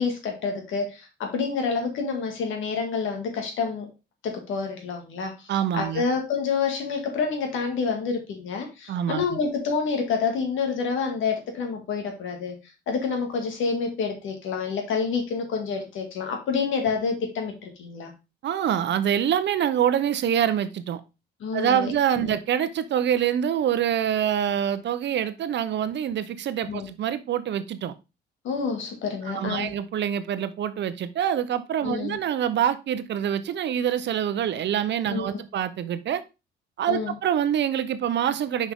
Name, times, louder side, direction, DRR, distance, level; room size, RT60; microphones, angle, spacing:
voice 1, 0.0-3.9 4.2-5.5 5.7-12.6 12.9-18.1 21.4-21.9 22.2-22.4 26.7-26.9 28.4-29.7 31.8-32.2 35.1-35.3 36.9-37.1, left 5 dB, 75° left, 2.1 m, -28 dB
voice 2, 5.5-6.0 8.9-9.2 18.4-21.0 21.5-27.9 29.2-36.2 36.8-38.7, right 9 dB, 65° right, 0.7 m, -25 dB
6.1 x 5.3 x 3.5 m
cardioid pair, 90°, 20 cm